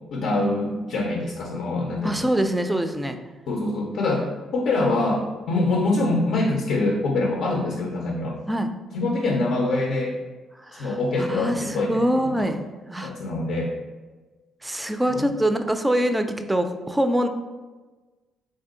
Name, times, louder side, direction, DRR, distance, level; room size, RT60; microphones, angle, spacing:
voice 1, 0.1-2.3 3.5-8.4 8.9-10.2 10.8-12.5 13.0-13.7 15.1-15.3, left 2 dB, 75° left, 0 dB, 0.5 m, -24 dB
voice 2, 2.0-3.2 8.5-8.7 10.7-13.1 14.6-17.3, equal, 10° right, 7 dB, 0.3 m, -24 dB
3.5 x 2.6 x 3.7 m, 1.3 s
cardioid pair, 90°, 0 cm